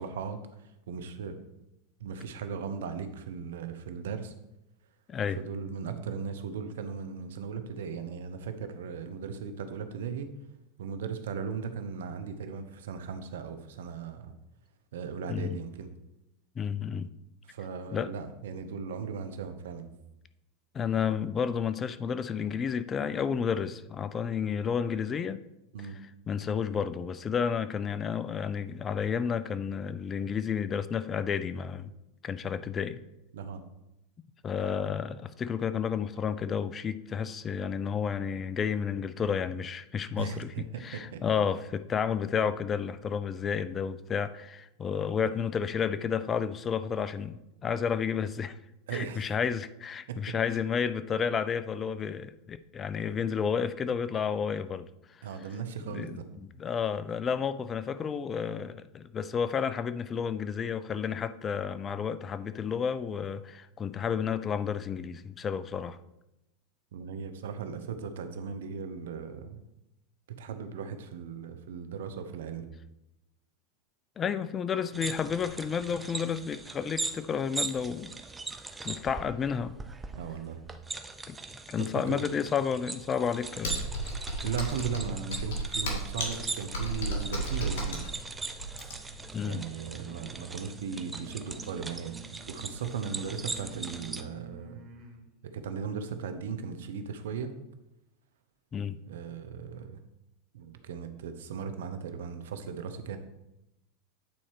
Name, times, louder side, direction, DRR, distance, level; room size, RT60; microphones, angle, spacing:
voice 1, 0.0-1.4 2.0-4.3 5.4-10.3 10.8-14.3 14.9-15.9 17.4-19.9 25.7-26.0 33.3-33.6 40.2-41.2 48.9-49.2 50.1-50.3 55.2-56.2 66.9-69.6 70.4-72.7 80.1-80.6 81.8-82.2 84.4-88.1 89.4-92.1 92.5-94.8 95.4-97.6 99.1-100.0 100.5-103.2, right 6 dB, 75° right, 0.8 m, -37 dB
voice 2, 5.1-5.4 15.3-15.6 16.6-17.1 17.9-18.1 20.7-25.4 25.8-25.9 26.3-31.9 32.2-33.0 34.4-48.6 48.9-54.9 55.2-55.3 55.8-66.0 74.2-78.1 78.8-79.8 81.3-81.4 81.7-83.9 89.3-89.7 98.7-99.0, left 7 dB, 30° left, 0.4 m, -31 dB
sound 1, 74.9-94.2, right 3 dB, 15° right, 0.7 m, -40 dB
Computer keyboard, 83.6-89.2, right 1 dB, 70° left, 2.2 m, -33 dB
sound 2, 87.9-95.3, right 3 dB, 40° right, 1.6 m, -50 dB
8.8 x 4.3 x 4.6 m
hypercardioid pair, 95°, 0 cm